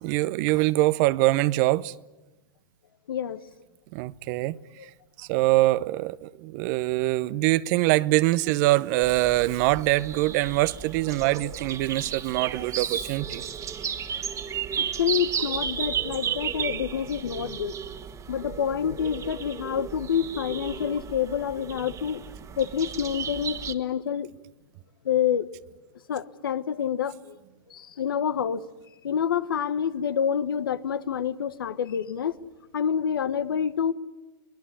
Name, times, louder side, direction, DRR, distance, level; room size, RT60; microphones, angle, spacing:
voice 1, 0.0-1.9 3.9-4.6 5.2-13.4, right 18 dB, 55° right, 0.8 m, -24 dB
voice 2, 3.1-3.4 4.8-4.9 12.5-12.6 14.8-17.8 18.3-22.2 22.6-24.3 25.0-25.5 26.1-27.4 27.7-28.6 29.0-32.3 32.7-33.9, left 8 dB, 80° left, 1.2 m, -27 dB
sound 1, 9.0-23.7, right 8 dB, 30° right, 1.7 m, -34 dB
23.5 x 20.5 x 9.8 m
hypercardioid pair, 105°, 12 cm